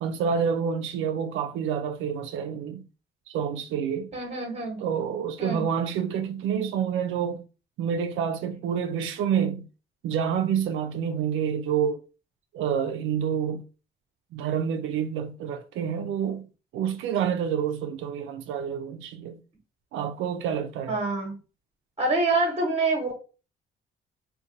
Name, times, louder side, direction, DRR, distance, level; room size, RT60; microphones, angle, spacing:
voice 1, 0.0-2.8 3.3-4.1 4.8-7.4 7.8-9.7 10.0-12.0 12.5-13.7 14.3-16.5 16.7-19.4 19.9-21.0, right 7 dB, 80° right, 0.4 m, -28 dB
voice 2, 4.1-4.8 5.4-5.6 20.9-21.3 22.0-23.1, right 3 dB, 30° right, 1.1 m, -26 dB
2.5 x 2.2 x 3.8 m
cardioid pair, 90°, 20 cm